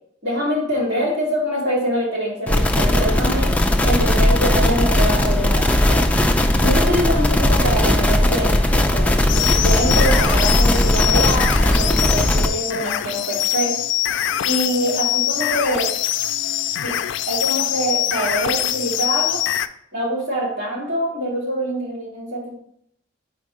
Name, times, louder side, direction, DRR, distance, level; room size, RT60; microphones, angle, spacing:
voice 1, 0.2-3.6 3.8-6.0 6.6-13.8 14.4-15.9 16.8-19.4 19.9-22.5, equal, 65° right, -6 dB, 2.4 m, -24 dB
sound 1, 2.5-12.5, left 1 dB, 10° left, 0.3 m, -17 dB
sound 2, 9.3-19.7, left 12 dB, 85° left, 0.3 m, -23 dB
4.4 x 4.4 x 4.8 m, 0.71 s
head